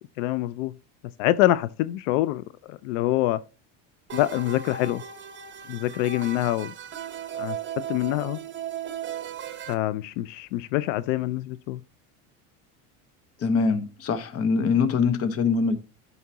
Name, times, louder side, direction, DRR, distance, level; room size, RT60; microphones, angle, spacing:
voice 1, 0.2-0.7 1.2-3.4 4.1-5.0 5.7-6.7 7.4-7.6 7.9-8.4 9.7-11.8, left 15 dB, 90° left, 0.6 m, -25 dB
sound 1, 4.1-9.7, right 8 dB, 30° right, 1.2 m, -36 dB
voice 2, 13.4-15.8, left 5 dB, 40° left, 1.2 m, -23 dB
11.0 x 5.7 x 2.9 m
supercardioid pair, 120°, 37 cm